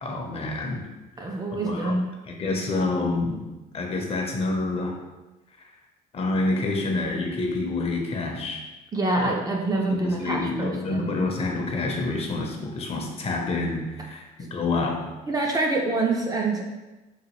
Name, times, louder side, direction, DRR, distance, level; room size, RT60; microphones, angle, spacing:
voice 1, 0.0-0.8 1.3-2.0 2.3-3.4 3.7-4.9 5.6-5.7 6.1-8.6 9.2-9.4 9.9-15.0, left 3 dB, 35° left, 1 dB, 0.6 m, -28 dB
voice 2, 1.2-2.0 8.9-11.1 15.3-16.6, right 2 dB, 20° right, 0 dB, 0.4 m, -26 dB
3.8 x 2.4 x 3.0 m, 1.1 s
cardioid pair, 110°, 17 cm